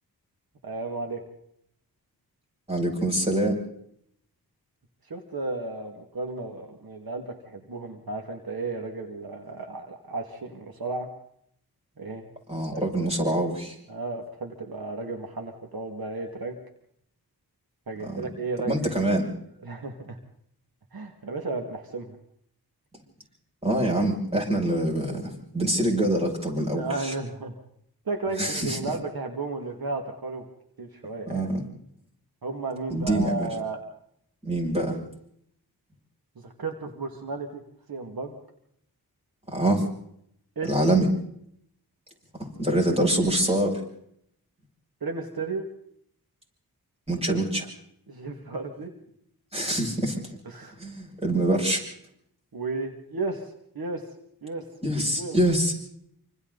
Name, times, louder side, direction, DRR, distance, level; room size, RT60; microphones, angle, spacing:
voice 1, 0.6-1.2 5.1-11.1 12.0-12.3 12.7-13.1 13.9-16.6 17.9-19.0 19.6-20.2 20.9-22.2 26.8-27.6 28.1-30.4 30.8-31.4 32.4-33.8 36.4-37.6 37.9-38.4 40.6-40.7 45.0-45.7 47.3-47.4 48.1-48.9 50.5-50.8 52.5-54.1 54.4-54.7 55.2-55.4, right 3 dB, 70° right, 4 dB, 2.3 m, -34 dB
voice 2, 2.7-3.6 12.5-13.7 18.1-18.3 18.7-19.3 23.6-27.1 28.4-28.8 31.3-31.6 32.9-33.5 34.4-35.0 39.5-39.9 40.6-41.1 42.4-43.8 47.1-47.6 49.5-50.2 50.8-51.8 54.8-55.8, right 1 dB, 15° right, -2 dB, 7.1 m, -25 dB
27.5 x 25.5 x 4.1 m, 0.72 s
wide cardioid pair, 70°, 38 cm